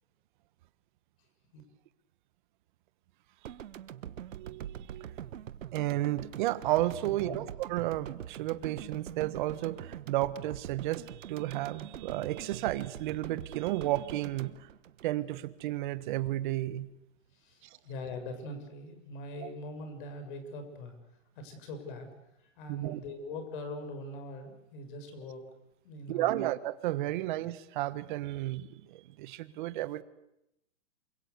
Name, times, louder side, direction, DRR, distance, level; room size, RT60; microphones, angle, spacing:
sound 1, 3.5-15.7, right 10 dB, 85° right, 1.3 m, -44 dB
voice 1, 4.3-5.1 5.7-14.5 15.0-16.9 22.7-23.0 26.1-30.0, right 15 dB, 40° right, 15 dB, 1.4 m, -32 dB
voice 2, 7.0-7.4 17.3-20.9 21.3-22.1 22.4-25.5 25.8-26.5 27.0-27.1, left 2 dB, 40° left, 7 dB, 6.7 m, -42 dB
27.5 x 24.5 x 8.2 m, 0.85 s
hypercardioid pair, 160°, 38 cm